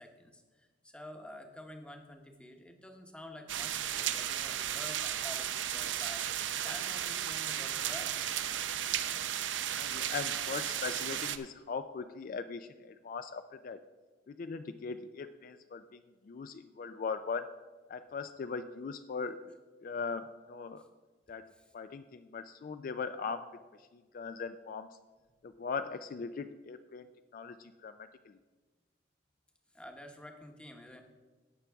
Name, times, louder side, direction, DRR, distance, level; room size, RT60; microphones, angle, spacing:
voice 1, 0.0-6.2 6.6-8.2 20.8-20.9 21.5-21.7 29.7-31.0, left 1 dB, 5° left, 4 dB, 0.9 m, -49 dB
sound 1, 3.5-11.4, right 10 dB, 80° right, 0.5 m, -34 dB
voice 2, 9.8-13.8 14.3-17.5 17.9-20.8 21.3-21.5 21.7-23.5 23.8-25.0 25.4-27.1 27.3-28.4, left 5 dB, 45° left, 10 dB, 0.3 m, -40 dB
16.5 x 5.9 x 3.4 m, 1.3 s
head